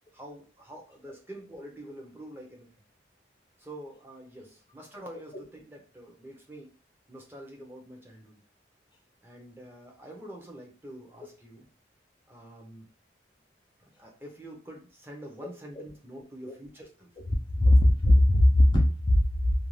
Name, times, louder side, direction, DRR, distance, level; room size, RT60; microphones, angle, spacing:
voice 1, 0.1-2.7 3.6-6.7 7.1-8.4 9.2-11.6 12.3-12.9 13.8-17.1 17.5-17.9, right 1 dB, 10° right, 0.6 m, -46 dB
voice 2, 17.5-19.5, left 1 dB, 25° left, 0.3 m, -20 dB
2.5 x 2.3 x 3.1 m
head